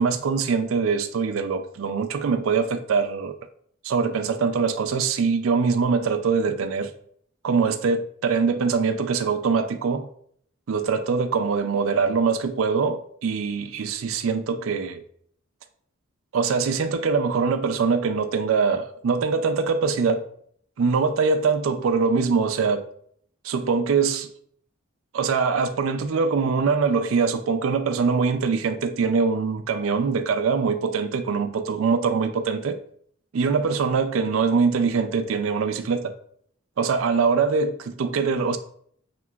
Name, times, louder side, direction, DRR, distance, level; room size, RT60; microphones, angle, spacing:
voice 1, 0.0-3.4 3.8-6.9 7.4-10.1 10.7-15.0 16.3-20.3 20.8-22.8 23.4-24.3 25.1-32.8 33.3-36.1 36.8-38.6, right 5 dB, 85° right, 0.4 m, -23 dB
5.9 x 2.9 x 2.3 m
head